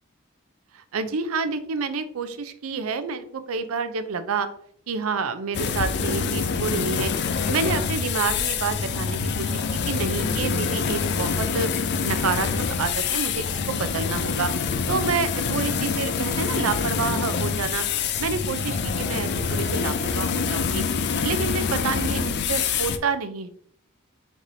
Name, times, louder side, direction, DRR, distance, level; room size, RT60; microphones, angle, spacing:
voice 1, 0.7-4.5 4.9-7.1 7.5-11.7 12.0-14.5 14.9-17.9 18.2-20.8 21.2-23.5, right 5 dB, 80° right, 10 dB, 0.5 m, -28 dB
sound 1, 5.5-23.0, left 5 dB, 55° left, 0.4 m, -26 dB
4.6 x 4.1 x 2.7 m, 0.64 s
head